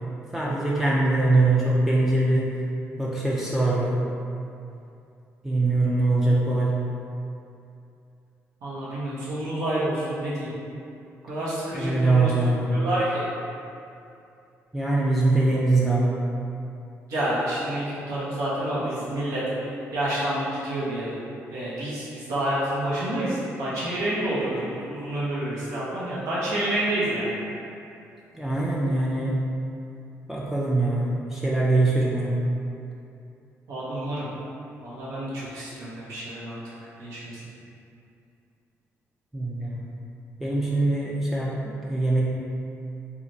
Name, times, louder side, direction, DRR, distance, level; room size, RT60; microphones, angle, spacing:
voice 1, 0.3-2.6 2.9-4.1 5.4-6.8 11.7-12.8 14.7-16.2 28.4-29.4 30.3-32.4 39.3-39.8 40.4-42.3, right 2 dB, 5° right, -6 dB, 0.3 m, -23 dB
voice 2, 8.6-10.5 11.2-12.3 12.7-13.2 17.1-19.4 19.9-21.2 21.5-27.3 33.7-34.3 34.8-36.6 37.0-37.2, right 1 dB, 85° right, -9 dB, 0.9 m, -28 dB
3.1 x 2.4 x 2.6 m, 2.6 s
cardioid pair, 95°, 5 cm